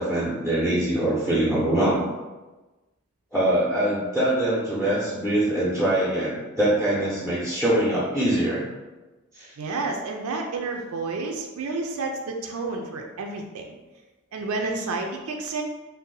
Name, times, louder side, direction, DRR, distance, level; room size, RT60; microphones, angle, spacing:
voice 1, 0.0-2.0 3.3-8.7 9.3-9.5, right 1 dB, 5° left, -9 dB, 0.6 m, -23 dB
voice 2, 9.6-13.8 14.3-15.6, right 3 dB, 85° right, 2 dB, 0.4 m, -30 dB
2.6 x 2.0 x 3.8 m, 1.2 s
head